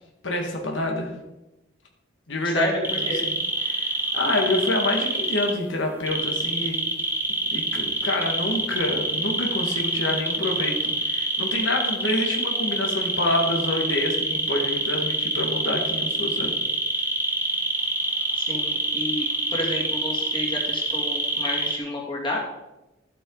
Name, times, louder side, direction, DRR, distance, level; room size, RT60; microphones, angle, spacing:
voice 1, 0.2-1.1 2.3-2.7 3.0-3.4 3.6-6.8 7.5-16.5, left 2 dB, 90° left, 1 dB, 1.9 m, -27 dB
voice 2, 2.4-3.2 18.3-19.3 19.5-22.4, left 1 dB, 25° left, -3 dB, 2.5 m, -30 dB
sound 1, 2.8-5.5 6.1-21.8, right 1 dB, 10° right, 1.1 m, -26 dB
13.0 x 8.1 x 4.0 m, 0.99 s
head